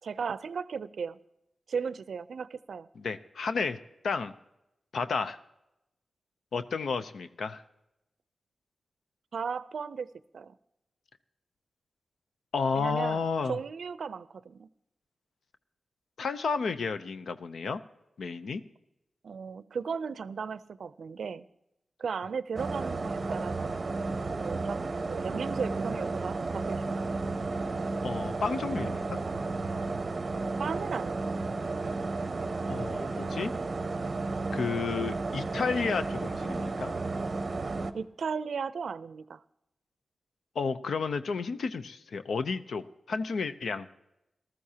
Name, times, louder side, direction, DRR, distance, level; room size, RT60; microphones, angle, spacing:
voice 1, 0.0-1.2 1.7-2.9 9.3-10.1 10.3-10.5 12.7-14.7 19.2-21.5 22.0-23.7 24.3-27.3 30.6-31.5 37.9-39.4, right 6 dB, 75° right, 16 dB, 0.5 m, -36 dB
voice 2, 3.0-3.8 4.0-4.3 4.9-5.4 6.5-7.6 12.5-13.6 16.2-17.8 18.2-18.6 28.0-29.2 32.7-33.5 34.5-36.9 40.6-43.9, left 5 dB, 85° left, 11 dB, 0.6 m, -31 dB
sound 1, 22.6-37.9, right 3 dB, 35° right, 0.7 m, -33 dB
19.0 x 14.0 x 2.8 m, 0.87 s
wide cardioid pair, 155°, 0 cm